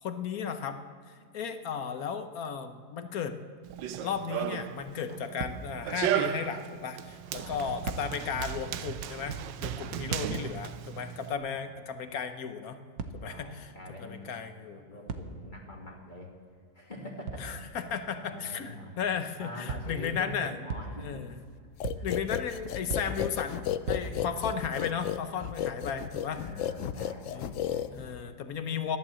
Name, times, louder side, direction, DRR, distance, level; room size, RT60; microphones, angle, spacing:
voice 1, 0.0-3.4 4.0-12.8 13.1-13.7 14.0-15.1 17.4-20.5 21.0-21.4 22.0-26.4 27.3-27.5 27.9-29.0, left 7 dB, 60° left, 8 dB, 1.2 m, -35 dB
Run, 3.6-11.3, right 11 dB, 80° right, 1.3 m, -35 dB
sound 1, 5.4-6.0 6.5-6.6 7.8-8.5 10.1-10.7 12.9-13.6 15.1-15.7 17.3-17.7 19.7-20.2 20.7-21.3 21.8-22.4 22.9-23.5 23.9-24.5, right 4 dB, 60° right, 1.3 m, -39 dB
voice 2, 7.4-8.0 9.6-10.3 11.5-11.7 13.2-14.4 14.7-16.4 16.7-17.6 17.8-19.0 19.4-21.2 22.0-22.1 22.5-22.6 24.0-25.0 26.3-27.9, left 1 dB, 25° left, -1 dB, 2.2 m, -45 dB
Pig noises, 21.8-28.3, left 10 dB, 90° left, 0.6 m, -33 dB
14.0 x 11.5 x 7.5 m, 2.1 s
omnidirectional pair, 2.0 m